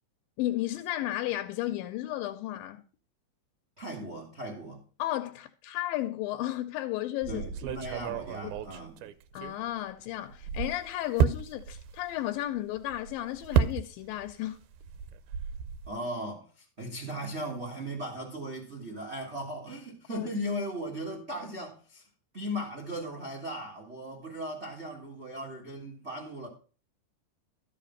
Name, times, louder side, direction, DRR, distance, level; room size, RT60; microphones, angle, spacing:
voice 1, 0.4-2.8 5.0-7.5 8.4-8.5 9.3-14.6 20.1-20.3, left 14 dB, 85° left, 2.4 m, -33 dB
voice 2, 3.8-4.8 7.3-9.0 15.9-22.1 22.3-26.5, equal, 60° right, 0.6 m, -37 dB
sound 1, 7.2-9.9 10.3-14.3 14.6-15.9, right 8 dB, 75° right, 1.9 m, -32 dB
12.5 x 5.0 x 5.3 m
omnidirectional pair, 4.0 m